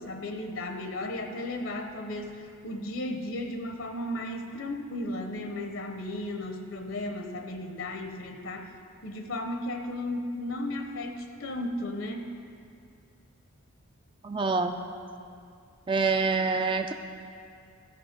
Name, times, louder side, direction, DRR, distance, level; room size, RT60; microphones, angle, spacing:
voice 1, 0.0-8.7 9.0-12.3, left 1 dB, 65° left, 5 dB, 0.8 m, -35 dB
voice 2, 14.2-14.8 15.9-16.9, right 4 dB, 25° right, 6 dB, 0.4 m, -26 dB
14.0 x 7.1 x 5.1 m, 2.4 s
head